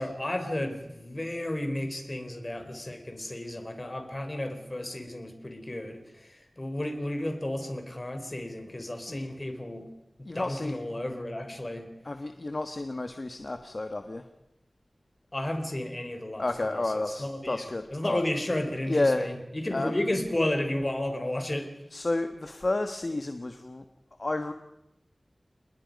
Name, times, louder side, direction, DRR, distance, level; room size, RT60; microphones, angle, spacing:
voice 1, 0.0-9.9 10.3-11.9 15.3-21.7, left 1 dB, 30° left, 6 dB, 4.1 m, -33 dB
voice 2, 10.3-10.8 12.0-14.2 16.4-18.2 18.9-19.3 19.7-20.0 21.9-23.8 24.2-24.5, left 2 dB, 50° left, 8 dB, 1.4 m, -31 dB
29.0 x 20.5 x 5.4 m, 0.89 s
wide cardioid pair, 70°, 0 cm